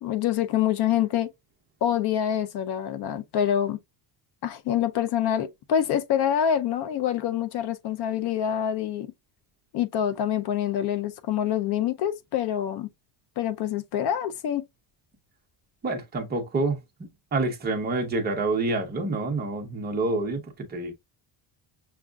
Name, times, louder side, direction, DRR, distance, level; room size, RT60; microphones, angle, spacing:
voice 1, 0.0-1.3 1.8-3.8 4.4-9.1 9.7-12.9 13.4-14.6, left 10 dB, 55° left, 0.5 m, -26 dB
voice 2, 15.8-20.4 20.7-20.9, right 3 dB, 20° right, 0.8 m, -27 dB
6.2 x 2.4 x 2.2 m
cardioid pair, 175°, 48 cm